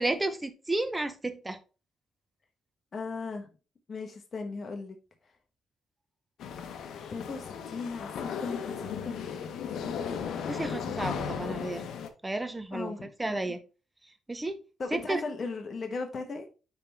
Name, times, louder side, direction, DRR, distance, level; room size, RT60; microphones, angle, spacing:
voice 1, 0.0-1.6 10.5-11.8 12.2-13.6 14.3-14.6 14.9-15.2, right 2 dB, 15° right, 0.8 m, -32 dB
voice 2, 2.9-3.5 3.9-4.9 7.1-9.3 9.7-10.2 12.7-13.4 14.8-16.5, left 4 dB, 40° left, 1.1 m, -37 dB
sound 1, 6.4-12.1, left 7 dB, 75° left, 0.9 m, -36 dB
9.5 x 3.5 x 3.4 m
cardioid pair, 90°, 0 cm